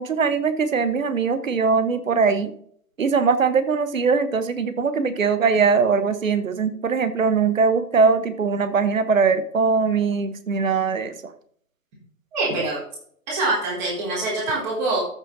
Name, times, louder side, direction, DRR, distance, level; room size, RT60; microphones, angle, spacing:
voice 1, 0.0-2.5 3.0-11.3, right 5 dB, 55° right, 12 dB, 1.2 m, -21 dB
voice 2, 12.3-12.8 13.3-15.0, right 2 dB, 25° right, -5 dB, 3.8 m, -24 dB
13.5 x 6.1 x 4.0 m, 0.62 s
figure-of-eight pair, 140°, 48 cm